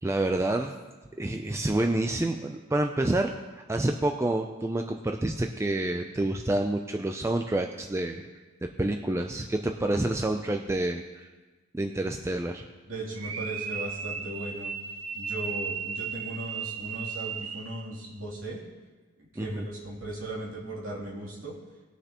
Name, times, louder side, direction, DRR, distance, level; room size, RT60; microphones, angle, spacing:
voice 1, 0.0-0.8 1.2-8.2 8.6-11.3 11.7-12.6 19.4-19.7, right 1 dB, 10° right, 4 dB, 0.3 m, -28 dB
voice 2, 12.9-14.7 15.1-18.6 19.2-21.5, right 1 dB, 65° right, -5 dB, 2.9 m, -37 dB
sound 1, 13.1-17.9, right 6 dB, 85° right, 0.8 m, -35 dB
19.5 x 6.6 x 2.9 m, 1.3 s
head